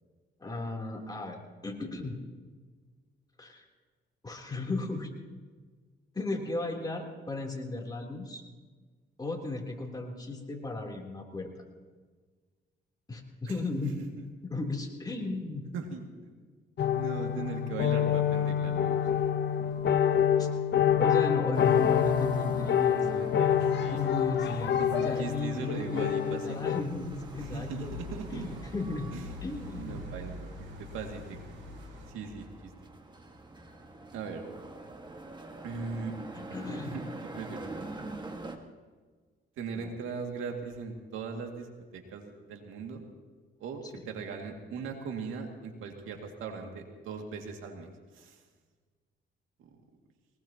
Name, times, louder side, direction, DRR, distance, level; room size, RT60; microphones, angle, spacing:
voice 1, 0.4-1.4 1.6-2.2 3.4-3.7 4.2-5.1 6.1-8.4 9.2-11.5 13.1-13.9 14.4-15.6 20.4-20.5 21.0-23.1 23.9-27.9 28.3-29.1 29.4-30.0 36.3-37.0 39.7-39.9 43.9-44.1, left 2 dB, 20° left, 0 dB, 3.4 m, -35 dB
voice 2, 15.7-16.3 16.9-19.0 23.0-24.0 24.4-26.6 27.4-28.4 29.1-29.4 29.7-31.4 32.1-32.7 34.1-34.4 35.6-36.1 36.9-37.7 39.6-43.0 43.6-48.4 49.6-49.8, right 5 dB, 85° right, 2 dB, 2.3 m, -39 dB
sound 1, 16.8-26.8, left 8 dB, 60° left, 1.0 m, -27 dB
sound 2, 21.5-38.6, right 2 dB, 20° right, 1.7 m, -46 dB
sound 3, 27.0-32.1, left 1 dB, 65° right, 6.3 m, -44 dB
22.5 x 20.0 x 3.0 m, 1.5 s
cardioid pair, 90°, 20 cm